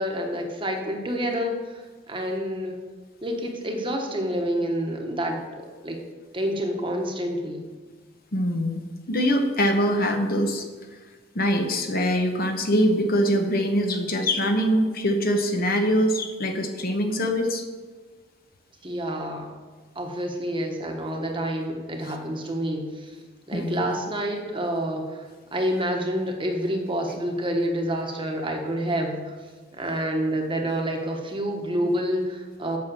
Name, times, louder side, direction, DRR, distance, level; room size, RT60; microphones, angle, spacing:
voice 1, 0.0-2.7 3.2-5.4 5.8-6.0 6.3-7.6 18.8-19.5 19.9-23.2 23.5-25.3 25.5-29.4 29.7-32.8, equal, 25° right, 2 dB, 1.2 m, -28 dB
voice 2, 8.3-10.7 11.3-17.6 23.5-23.9, equal, 45° left, 4 dB, 1.0 m, -23 dB
8.7 x 6.0 x 6.9 m, 1.4 s
head